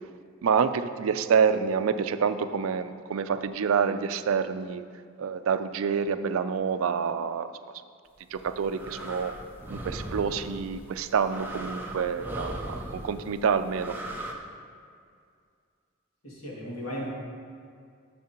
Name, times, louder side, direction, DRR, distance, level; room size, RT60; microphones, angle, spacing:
voice 1, 0.4-4.8 5.2-7.5 8.3-9.3 9.7-13.9, right 6 dB, 80° right, 11 dB, 0.4 m, -27 dB
sound 1, 8.3-14.3, right 1 dB, 10° right, 0.6 m, -38 dB
voice 2, 16.2-17.1, equal, 75° left, -5 dB, 2.2 m, -36 dB
11.0 x 6.7 x 2.9 m, 2.2 s
head